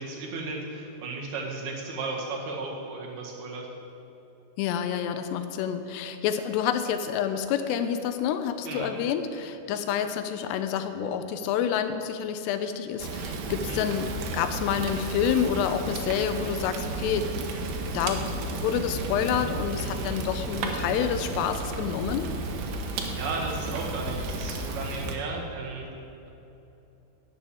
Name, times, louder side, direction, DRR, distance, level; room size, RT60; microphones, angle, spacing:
voice 1, 0.0-3.7 8.7-8.9 13.5-13.8 19.8-20.2 22.9-25.9, right 3 dB, 70° right, -1 dB, 3.6 m, -35 dB
voice 2, 4.6-17.3 17.9-22.3, left 8 dB, 85° left, 9 dB, 2.8 m, -28 dB
Fire, 13.0-25.2, right 2 dB, 90° right, 3.3 m, -33 dB
12.0 x 7.6 x 8.7 m, 3.0 s
omnidirectional pair, 4.8 m